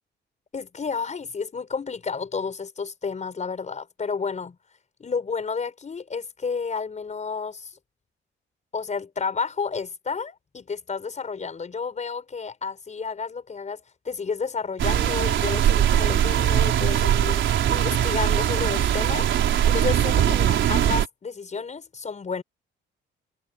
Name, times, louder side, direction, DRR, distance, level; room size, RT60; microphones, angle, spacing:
voice 1, 0.5-4.6 5.0-7.7 8.7-22.4, left 5 dB, 35° left, 5.5 m, -31 dB
sound 1, 14.8-21.1, right 10 dB, 70° right, 4.3 m, -21 dB
cardioid pair, 90°, 20 cm